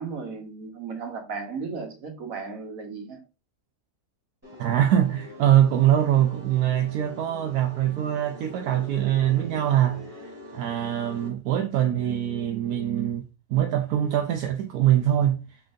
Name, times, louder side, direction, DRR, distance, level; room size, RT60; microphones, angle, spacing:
voice 1, 0.0-3.2, right 5 dB, 70° right, 1.5 m, -35 dB
sound 1, 4.4-11.3, left 1 dB, 10° right, 1.8 m, -44 dB
voice 2, 4.6-15.4, right 11 dB, 85° right, 1.1 m, -23 dB
4.5 x 3.7 x 2.5 m
omnidirectional pair, 1.6 m